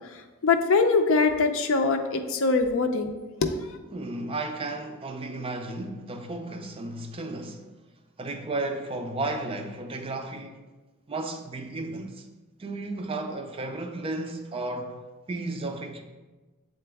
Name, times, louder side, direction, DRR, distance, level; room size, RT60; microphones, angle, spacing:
voice 1, 0.4-3.1 3.4-3.5, left 4 dB, 60° left, 0.5 m, -22 dB
voice 2, 3.9-7.7 8.2-10.6 11.1-12.3 12.6-15.0 15.3-16.0, right 2 dB, 25° right, 0.4 m, -33 dB
7.6 x 3.8 x 3.4 m
head